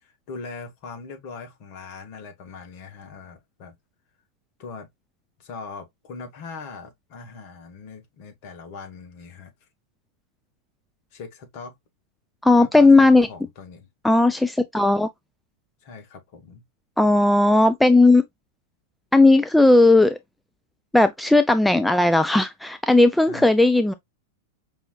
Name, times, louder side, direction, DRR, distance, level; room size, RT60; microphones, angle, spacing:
voice 1, 0.0-3.7 4.6-4.9 5.4-9.5 11.1-11.7 12.6-13.9 15.8-16.6 23.3-23.5, left 4 dB, 45° left, 1.5 m, -40 dB
voice 2, 12.4-13.3 14.0-15.1 17.0-18.2 19.1-20.2 20.9-23.9, left 2 dB, 5° left, 0.4 m, -16 dB
5.4 x 2.9 x 2.3 m
figure-of-eight pair, 95°, 0 cm